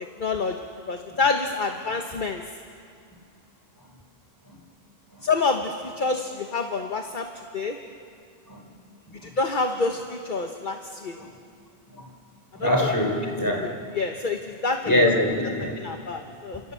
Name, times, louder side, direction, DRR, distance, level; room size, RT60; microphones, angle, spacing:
voice 1, 0.2-0.5 0.9-2.4 5.2-7.3 7.5-7.8 9.2-11.2 12.6-12.9 13.4-14.8 15.7-16.6, left 4 dB, 45° left, 4 dB, 1.4 m, -27 dB
voice 2, 12.6-13.7 14.8-15.7, left 1 dB, 15° left, 1 dB, 4.1 m, -23 dB
30.0 x 27.5 x 7.0 m, 2.5 s
omnidirectional pair, 1.1 m